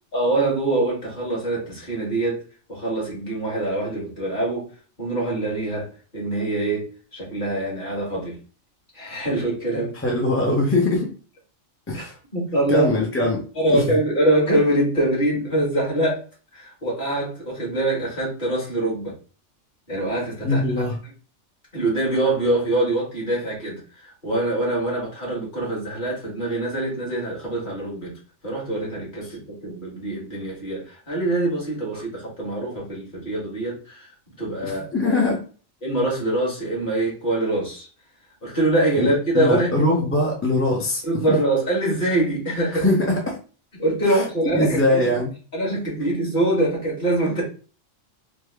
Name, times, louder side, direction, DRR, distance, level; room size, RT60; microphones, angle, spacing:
voice 1, 0.1-2.4 2.7-4.7 5.0-8.4 8.9-10.0 11.9-12.0 12.3-12.9 13.6-16.2 16.5-19.1 19.9-20.8 21.7-34.1 34.4-34.9 35.8-37.9 38.4-39.8 41.0-42.9 43.8-45.0 45.5-47.4, right 1 dB, 40° left, -5 dB, 1.8 m, -24 dB
voice 2, 10.0-11.1 11.9-12.2 12.7-13.4 13.7-13.9 20.4-21.0 34.6-35.4 39.0-41.0 41.3-41.4 42.7-43.4 44.1-44.2 44.5-45.3, left 2 dB, 15° left, -2 dB, 0.5 m, -22 dB
3.5 x 2.2 x 3.4 m, 0.38 s
omnidirectional pair, 1.3 m